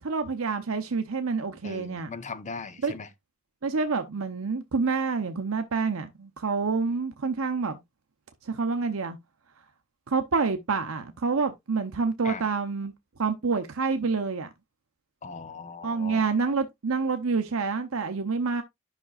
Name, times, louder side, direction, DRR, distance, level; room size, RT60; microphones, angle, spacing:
voice 1, 0.0-2.1 2.8-2.9 3.6-7.8 8.4-9.2 10.1-12.9 13.2-14.5 15.8-18.6, right 4 dB, 70° right, 0.8 m, -27 dB
voice 2, 1.6-3.1 12.2-12.4 15.2-16.3, left 4 dB, 35° left, 0.8 m, -39 dB
11.5 x 5.8 x 2.4 m
head